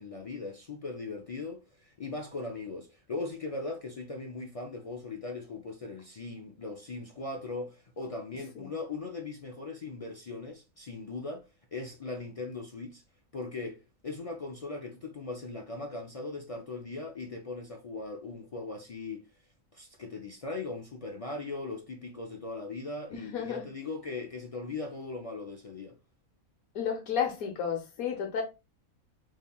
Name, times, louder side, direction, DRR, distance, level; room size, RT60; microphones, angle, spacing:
voice 1, 0.0-11.4 11.7-13.0 13.3-19.3 19.7-26.0, left 3 dB, 65° left, 0.3 m, -39 dB
voice 2, 23.1-23.6 26.7-28.4, left 7 dB, 90° left, 1.4 m, -32 dB
5.4 x 3.2 x 2.3 m
omnidirectional pair, 1.4 m